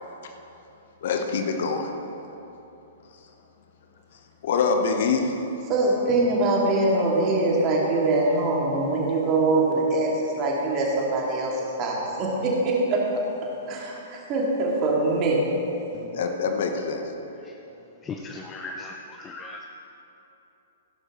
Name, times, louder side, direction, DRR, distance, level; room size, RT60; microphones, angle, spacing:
voice 1, 1.0-1.9 4.4-5.3 16.1-17.0, left 5 dB, 50° left, 4 dB, 1.1 m, -24 dB
voice 2, 5.7-13.0 13.7-15.4, right 2 dB, 30° right, -3 dB, 2.6 m, -23 dB
voice 3, 18.0-19.7, left 3 dB, 20° left, 3 dB, 0.6 m, -38 dB
16.5 x 11.0 x 3.2 m, 2.9 s
figure-of-eight pair, 110°, 0 cm